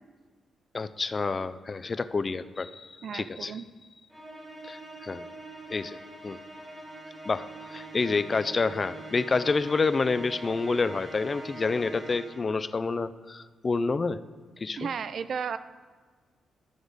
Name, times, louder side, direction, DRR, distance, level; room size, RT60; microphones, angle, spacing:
voice 1, 0.7-3.6 4.6-5.3 5.7-6.0 6.2-6.4 7.3-14.2 14.6-14.9, left 4 dB, 30° left, 13 dB, 0.3 m, -28 dB
voice 2, 3.0-3.6 14.8-15.6, right 6 dB, 55° right, 13 dB, 0.3 m, -33 dB
Musical instrument, 4.1-12.6, right 2 dB, 15° right, 1.8 m, -43 dB
13.0 x 4.8 x 4.0 m, 1.5 s
cardioid pair, 140°, 0 cm